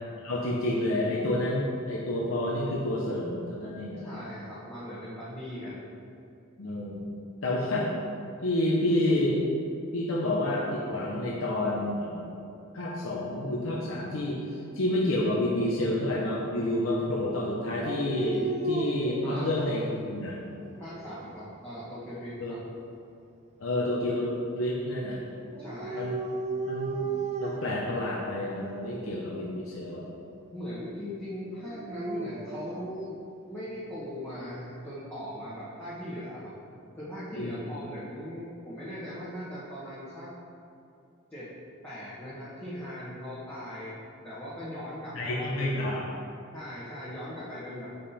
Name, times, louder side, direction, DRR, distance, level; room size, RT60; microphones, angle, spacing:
voice 1, 0.2-4.1 6.6-7.1 7.4-7.9 8.4-9.4 9.9-12.3 12.7-20.4 22.4-22.5 23.6-25.3 25.9-26.2 26.7-27.1 27.4-30.1 37.4-37.6 45.1-46.1, left 1 dB, 75° left, -5 dB, 0.9 m, -29 dB
voice 2, 4.0-5.8 19.2-19.6 20.8-22.6 25.6-26.1 30.5-33.2 33.5-40.3 41.3-41.5 41.8-45.8 46.5-47.9, equal, 10° left, -11 dB, 1.3 m, -39 dB
Dog, 17.8-20.0 20.6-21.4 25.5-27.8 28.6-29.1 31.6-32.9, right 3 dB, 30° right, 0.4 m, -35 dB
7.4 x 5.3 x 4.3 m, 2.6 s
head